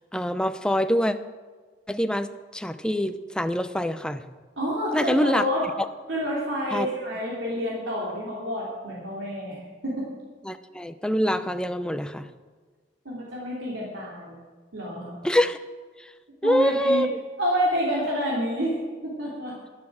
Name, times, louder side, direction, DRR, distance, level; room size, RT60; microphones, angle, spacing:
voice 1, 0.1-1.2 1.9-2.3 2.5-4.2 4.9-5.4 6.7-6.9 10.5-12.3 15.2-15.6 16.4-17.2, equal, 5° left, 9 dB, 0.6 m, -24 dB
voice 2, 4.6-5.7 6.1-10.1 13.0-14.4 14.7-15.1 16.4-17.0 17.4-19.6, equal, 90° right, -6 dB, 3.0 m, -28 dB
12.0 x 11.0 x 6.2 m, 1.4 s
head